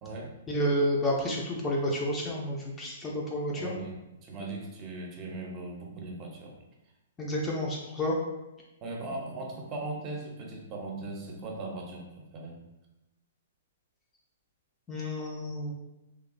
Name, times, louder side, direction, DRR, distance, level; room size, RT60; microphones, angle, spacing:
voice 1, 0.5-3.7 7.2-8.2 14.9-15.7, equal, 15° left, -3 dB, 0.4 m, -30 dB
voice 2, 3.5-4.0 4.2-6.5 8.8-12.0 12.3-12.6, right 2 dB, 30° right, 0 dB, 0.6 m, -38 dB
2.9 x 2.0 x 2.5 m, 0.96 s
hypercardioid pair, 130°, 0 cm